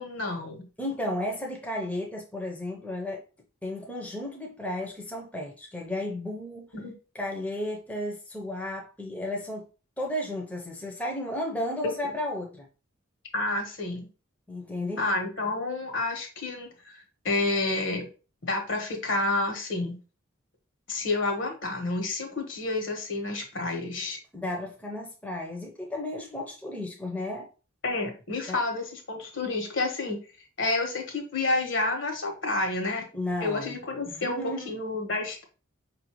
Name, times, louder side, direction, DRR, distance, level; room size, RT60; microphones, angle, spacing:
voice 1, 0.0-0.7 6.7-6.9 11.8-12.2 13.3-14.1 15.0-18.1 18.4-20.0 20.9-24.2 27.8-30.2 30.6-33.0 33.4-35.4, left 2 dB, 65° left, 1.2 m, -29 dB
voice 2, 0.8-3.2 3.6-6.7 7.1-9.7 10.0-12.7 14.5-15.0 24.3-27.5 28.5-28.6 33.1-33.8 34.1-34.7, left 1 dB, 5° left, 0.6 m, -33 dB
5.3 x 2.6 x 2.9 m
head